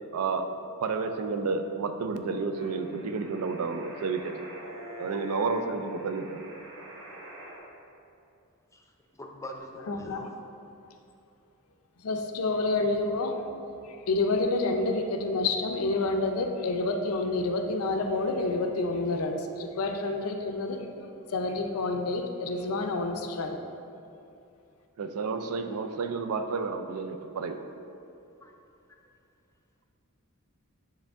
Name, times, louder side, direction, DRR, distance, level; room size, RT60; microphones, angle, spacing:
voice 1, 0.1-0.5 0.8-4.3 5.0-6.4 25.0-27.6, right 4 dB, 80° right, 7 dB, 0.4 m, -31 dB
sound 1, 2.5-7.6, left 1 dB, 60° right, 0.9 m, -45 dB
voice 2, 9.1-10.3 28.4-28.5, left 1 dB, 15° left, 1 dB, 0.5 m, -43 dB
voice 3, 9.9-10.3 12.0-13.4 13.8-20.9 21.3-23.6, left 2 dB, 75° left, 4 dB, 0.5 m, -28 dB
9.4 x 3.4 x 3.5 m, 2.7 s
head